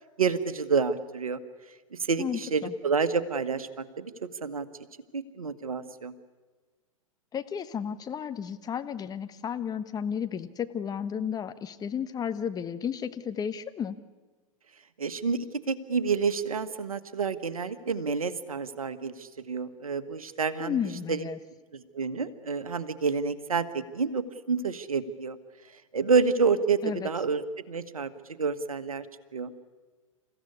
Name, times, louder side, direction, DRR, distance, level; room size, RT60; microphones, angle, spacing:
voice 1, 0.2-1.4 1.9-4.7 5.1-6.1 15.0-20.8 21.1-21.3 21.7-25.4 25.9-27.4 27.7-28.1 28.4-29.1 29.3-29.5, right 5 dB, 80° right, 11 dB, 1.4 m, -29 dB
voice 2, 2.2-2.7 7.3-14.0 20.6-21.4 26.8-27.1, left 8 dB, 20° left, 10 dB, 1.2 m, -33 dB
28.5 x 15.5 x 9.7 m, 1.4 s
figure-of-eight pair, 100°, 18 cm